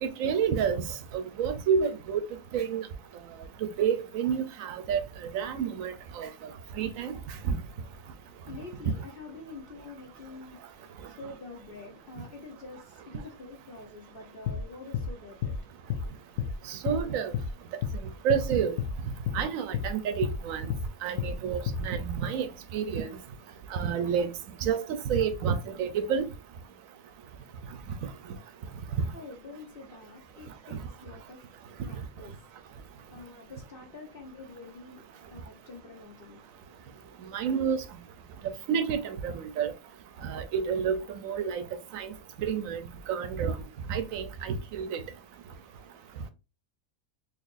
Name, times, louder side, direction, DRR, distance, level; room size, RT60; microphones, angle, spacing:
voice 1, 0.0-0.8 1.1-2.2 2.5-2.9 3.6-5.0 5.3-6.3 6.8-7.1 7.4-7.6 16.7-17.3 18.2-18.7 19.3-20.7 21.0-22.5 22.7-23.1 23.7-24.3 24.6-24.8 25.1-26.3 30.7-30.8 37.3-37.8 38.7-39.7 40.2-41.6 41.9-42.1 42.4-42.8 43.1-43.6 43.9-45.0, right 7 dB, 70° right, 1.0 m, -29 dB
voice 2, 7.8-16.8 28.6-37.4 38.2-38.5, left 3 dB, 45° left, 0.9 m, -48 dB
sound 1, 14.4-14.6 14.9-15.1 15.4-15.6 15.9-16.1 16.4-16.5 16.9-17.0 17.3-17.5 17.8-18.0 18.3-18.5 18.8-18.9 19.2-19.4 19.7-19.9 20.2-20.4 20.7-20.9 21.2-21.3 21.7-21.8, left 8 dB, 75° left, 1.0 m, -30 dB
4.0 x 3.1 x 2.5 m
omnidirectional pair, 1.5 m